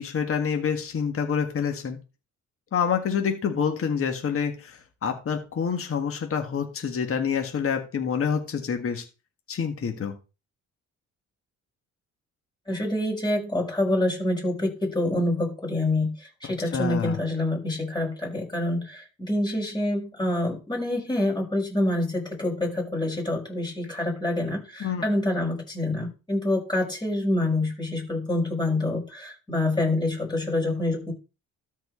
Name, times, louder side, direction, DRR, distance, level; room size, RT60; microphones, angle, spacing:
voice 1, 0.0-2.0 2.7-9.0 9.5-10.1 16.7-17.2 24.8-25.0, left 6 dB, 45° left, 5 dB, 1.7 m, -27 dB
voice 2, 12.7-31.1, left 1 dB, 15° left, -1 dB, 6.2 m, -26 dB
13.0 x 4.6 x 4.4 m, 0.30 s
cardioid pair, 90°, 30 cm